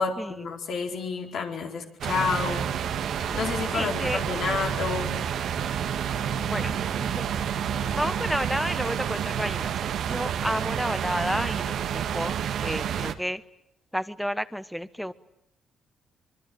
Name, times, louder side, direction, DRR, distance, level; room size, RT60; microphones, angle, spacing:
voice 1, 0.0-2.8 3.3-5.3, left 5 dB, 70° left, 2 dB, 4.6 m, -30 dB
sound 1, 2.0-13.1, right 9 dB, 70° right, 1.8 m, -29 dB
sound 2, 2.9-9.3, left 2 dB, 20° left, 4.4 m, -44 dB
voice 2, 3.7-4.2 6.5-7.2 7.9-12.3 12.6-13.4 13.9-15.1, equal, ahead, 14 dB, 1.2 m, -31 dB
25.5 x 23.0 x 9.4 m, 0.74 s
cardioid pair, 90°, 0 cm